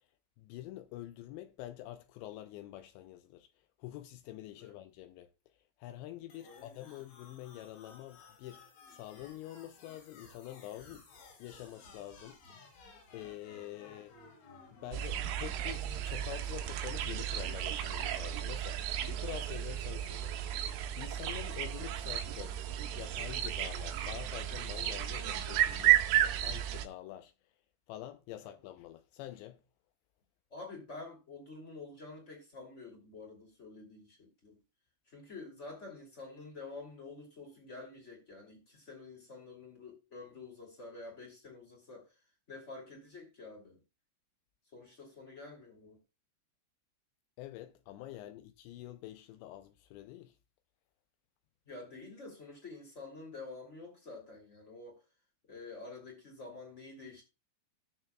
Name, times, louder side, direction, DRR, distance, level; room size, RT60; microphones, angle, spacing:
voice 1, 0.4-3.5 3.8-5.3 5.8-8.6 8.9-11.1 11.4-12.4 13.1-14.2 14.7-22.6 22.9-27.3 27.9-29.6 47.4-50.4, left 14 dB, 90° left, 2.5 m, -46 dB
sound 1, 6.3-16.3, left 3 dB, 70° left, 5.5 m, -56 dB
voice 2, 6.4-6.9 13.8-14.0 19.8-20.0 28.4-28.5 30.5-34.6 35.1-43.8 44.7-46.0 48.1-48.3 51.6-55.0 55.5-57.2, left 3 dB, 20° left, 1.9 m, -49 dB
sound 2, 14.9-26.9, right 12 dB, 80° right, 2.6 m, -33 dB
18.5 x 6.5 x 2.3 m
omnidirectional pair, 5.7 m